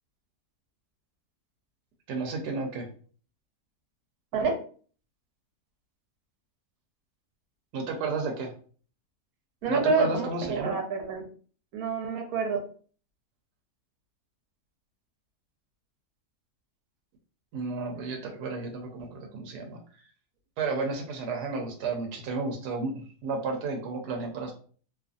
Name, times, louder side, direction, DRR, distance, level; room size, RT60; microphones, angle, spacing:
voice 1, 2.1-2.9 7.7-8.5 9.7-10.8 17.5-19.8 20.6-24.5, right 3 dB, 90° right, 3 dB, 1.2 m, -32 dB
voice 2, 9.6-11.2 11.7-12.6, right 4 dB, 70° right, 3 dB, 1.1 m, -27 dB
2.8 x 2.4 x 2.4 m, 0.42 s
omnidirectional pair, 1.7 m